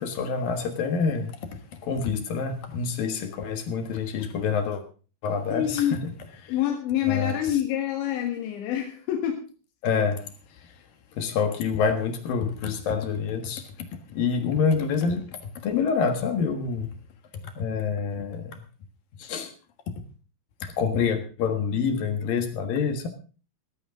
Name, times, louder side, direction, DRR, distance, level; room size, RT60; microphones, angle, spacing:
voice 1, 0.0-4.8 5.2-6.1 6.4-6.5 7.1-7.4 9.8-10.3 10.6-10.7 11.1-17.0 17.6-18.6 19.2-19.5 20.6-23.1, left 5 dB, 60° left, 7 dB, 2.9 m, -27 dB
voice 2, 5.5-6.0 6.5-9.5, left 11 dB, 90° left, 2 dB, 3.9 m, -26 dB
16.0 x 14.5 x 3.7 m, 0.37 s
omnidirectional pair, 5.1 m